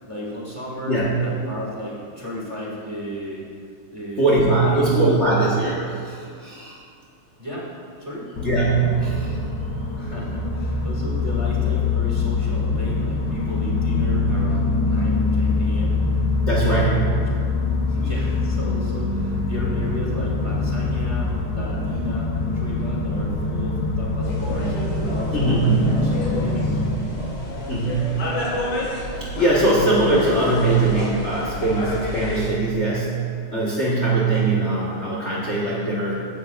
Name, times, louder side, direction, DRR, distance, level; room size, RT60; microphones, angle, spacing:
voice 1, 0.1-3.4 3.9-4.3 4.6-5.1 7.4-7.7 8.0-8.3 9.9-16.0 16.6-17.2 17.9-24.8 25.0-26.8, equal, 15° right, -6 dB, 2.0 m, -34 dB
voice 2, 4.2-6.8 8.4-9.4 16.5-17.0 25.3-25.7 27.7-28.3 29.1-33.3 33.5-36.1, right 2 dB, 35° left, -6 dB, 1.5 m, -21 dB
sound 1, 8.4-26.9, left 3 dB, 55° left, 1.4 m, -24 dB
sound 2, 24.2-32.5, left 1 dB, 75° left, 2.7 m, -30 dB
15.5 x 11.0 x 2.5 m, 2.3 s
omnidirectional pair, 2.3 m